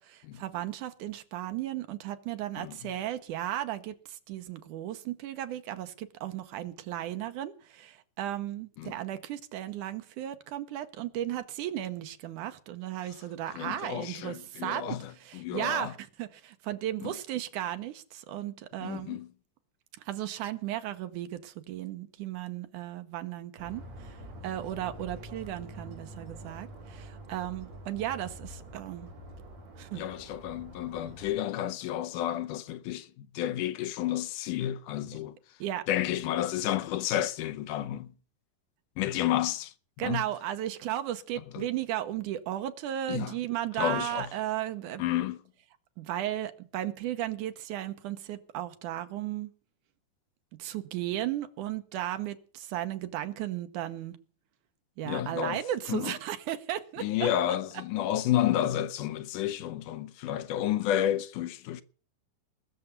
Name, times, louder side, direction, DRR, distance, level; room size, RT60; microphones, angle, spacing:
voice 1, 0.0-19.2 20.0-24.2 24.4-29.1 29.8-30.0 35.6-35.8 40.0-45.0 46.0-49.5 50.6-54.2 55.0-57.3, right 12 dB, 80° right, 2.5 m, -35 dB
voice 2, 13.5-15.9 17.0-17.1 18.8-19.3 29.9-35.3 35.9-38.1 39.0-39.7 40.0-40.2 41.5-41.6 43.1-43.3 43.8-44.3 45.0-45.4 55.1-55.6 55.9-56.2 57.0-61.8, left 12 dB, 80° left, 2.3 m, -31 dB
sound 1, 23.6-31.4, right 1 dB, 55° right, 4.5 m, -46 dB
20.0 x 7.0 x 8.2 m
omnidirectional pair, 3.7 m